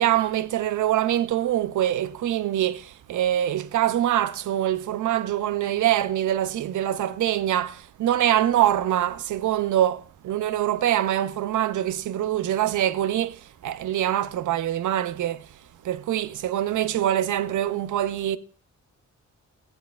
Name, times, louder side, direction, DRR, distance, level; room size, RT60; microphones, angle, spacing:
voice 1, 0.0-15.5 15.8-18.4, right 12 dB, 90° right, 0.5 m, -24 dB
14.0 x 8.4 x 2.3 m
cardioid pair, 80°, 30 cm